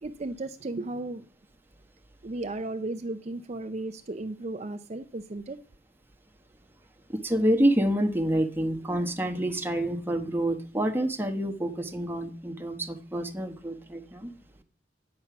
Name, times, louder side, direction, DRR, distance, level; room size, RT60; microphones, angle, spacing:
voice 1, 0.0-1.2 2.2-5.6, right 2 dB, 40° right, 8 dB, 0.6 m, -35 dB
voice 2, 7.1-14.3, right 1 dB, 10° right, 5 dB, 1.1 m, -27 dB
10.5 x 8.7 x 5.9 m, 0.42 s
head